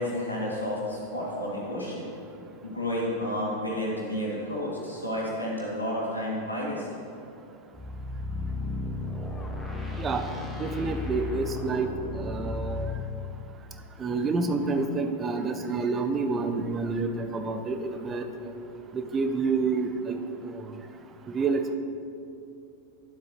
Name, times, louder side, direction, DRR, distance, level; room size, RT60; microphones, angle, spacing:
voice 1, 0.0-2.1 2.6-7.0, left 1 dB, 85° left, -5 dB, 2.1 m, -31 dB
sound 1, 7.7-13.0, left 2 dB, 5° left, 1.2 m, -34 dB
voice 2, 9.9-10.3 10.6-13.0 14.0-18.5 18.9-20.2 20.4-20.8 21.3-21.8, right 4 dB, 20° right, 6 dB, 0.6 m, -29 dB
12.0 x 7.5 x 2.9 m, 2.6 s
figure-of-eight pair, 90°, 0 cm